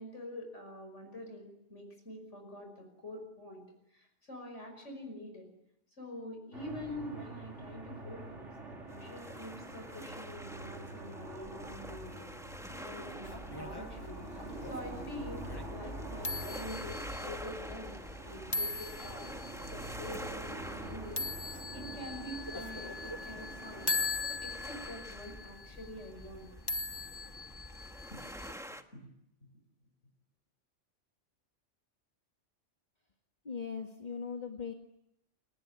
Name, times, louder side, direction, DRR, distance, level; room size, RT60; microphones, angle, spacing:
voice 1, 0.0-3.6 3.9-5.5 6.0-12.3 12.8-14.3 14.6-18.0 18.2-19.3 19.7-23.9 24.3-26.5 28.1-28.2 28.9-29.1 29.5-29.6, left 1 dB, 75° left, 3 dB, 5.8 m, -46 dB
sound 1, 6.5-24.9, right 2 dB, 75° right, 4.4 m, -46 dB
sound 2, 8.9-28.8, equal, ahead, 1.5 m, -49 dB
sound 3, 13.2-28.5, left 3 dB, 20° left, 1.4 m, -41 dB
voice 2, 33.4-34.7, left 6 dB, 35° left, 3 dB, 2.0 m, -39 dB
30.0 x 19.5 x 9.6 m, 0.81 s
omnidirectional pair, 1.2 m